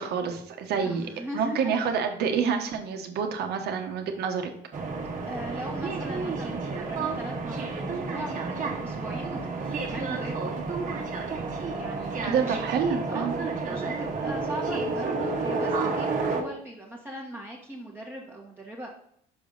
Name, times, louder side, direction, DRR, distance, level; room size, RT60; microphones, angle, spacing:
voice 1, 0.0-1.1 1.3-4.5 12.2-13.3, right 6 dB, 75° right, 5 dB, 1.2 m, -28 dB
voice 2, 0.8-1.9 5.2-10.6 11.7-12.6 13.1-18.9, right 1 dB, 10° right, -3 dB, 1.2 m, -39 dB
sound 1, 4.7-16.4, right 3 dB, 50° right, 1.2 m, -30 dB
6.2 x 5.2 x 3.9 m, 0.68 s
cardioid pair, 110°, 17 cm